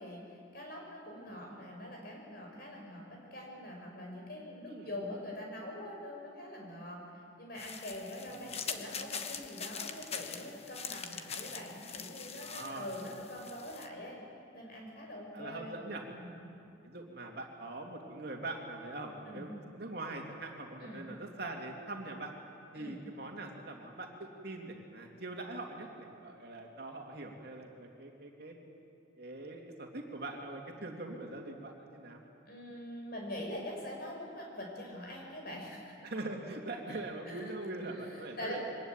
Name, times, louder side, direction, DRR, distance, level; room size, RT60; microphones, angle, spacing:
voice 1, 0.0-7.0 7.4-14.2 14.5-15.8 16.1-16.6 19.3-19.4 20.8-21.1 22.7-22.9 32.5-36.0 36.9-37.5 37.9-38.6, left 1 dB, 50° left, 0 dB, 5.8 m, -44 dB
sound 1, 7.6-13.9, left 6 dB, 30° left, 1.1 m, -43 dB
voice 2, 12.4-12.9 15.3-16.0 16.8-22.3 22.7-28.5 29.1-32.2 36.0-38.6, right 2 dB, 55° right, 1 dB, 2.7 m, -42 dB
23.5 x 19.5 x 9.0 m, 2.5 s
head